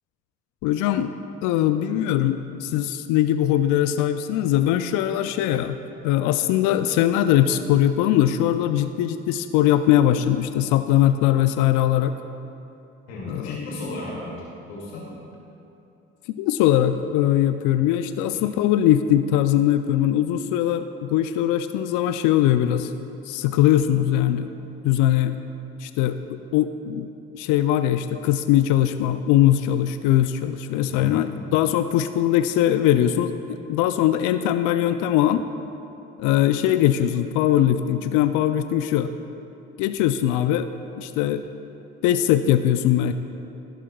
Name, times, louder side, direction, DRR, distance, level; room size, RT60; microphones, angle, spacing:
voice 1, 0.6-1.1 1.4-5.8 6.0-12.1 13.3-13.6 16.3-22.9 23.3-24.5 24.8-25.4 25.8-33.3 33.7-35.4 36.2-39.1 39.8-40.7 41.0-41.4 42.0-43.1, left 12 dB, 70° left, 10 dB, 0.4 m, -21 dB
voice 2, 13.1-14.4 14.7-15.1 30.9-31.3, left 2 dB, 90° left, -4 dB, 2.3 m, -34 dB
14.0 x 11.5 x 2.3 m, 2.8 s
hypercardioid pair, 50°, 31 cm